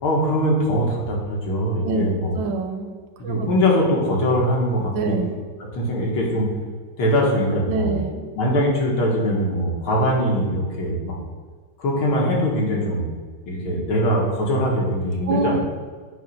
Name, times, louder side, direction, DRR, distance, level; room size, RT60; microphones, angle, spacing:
voice 1, 0.0-2.3 3.2-5.2 5.7-6.5 7.0-8.0 8.4-11.1 11.8-13.1 13.5-15.6, equal, 70° left, -2 dB, 2.5 m, -22 dB
voice 2, 1.8-2.9 3.2-3.5 4.9-5.3 7.7-8.2 15.3-15.6, right 4 dB, 65° right, 4 dB, 1.5 m, -25 dB
9.3 x 4.2 x 5.5 m, 1.5 s
omnidirectional pair, 2.4 m